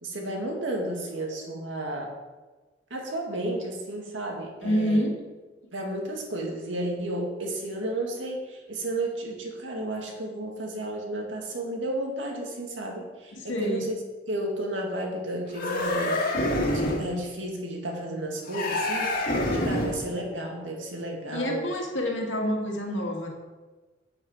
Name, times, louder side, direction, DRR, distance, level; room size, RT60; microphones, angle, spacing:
voice 1, 0.0-2.1 2.9-5.0 5.7-13.9 14.3-21.7, right 1 dB, 75° right, 1 dB, 2.1 m, -32 dB
voice 2, 4.6-5.1 13.5-13.9 21.3-23.3, equal, 75° left, 0 dB, 2.2 m, -27 dB
sound 1, 15.5-17.1 18.5-20.1, left 1 dB, 50° left, 1.9 m, -27 dB
8.9 x 8.2 x 5.0 m, 1.3 s
head